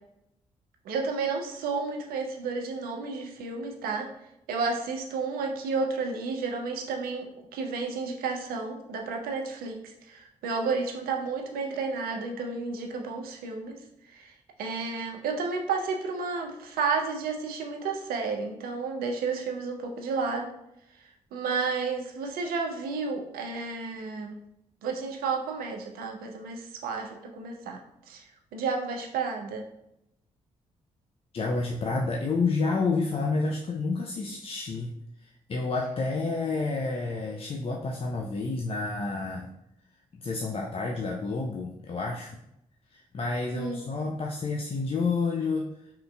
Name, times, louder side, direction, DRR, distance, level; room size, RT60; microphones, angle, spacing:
voice 1, 0.8-4.1 4.5-13.8 14.1-14.3 14.6-20.5 21.3-24.4 24.8-29.6 43.5-43.8, right 4 dB, 70° right, 3 dB, 0.5 m, -32 dB
voice 2, 31.3-34.9 35.2-39.5 40.1-42.3 42.9-45.7, left 3 dB, 35° left, -1 dB, 0.4 m, -29 dB
3.6 x 2.5 x 2.2 m, 0.83 s
hypercardioid pair, 40°, 16 cm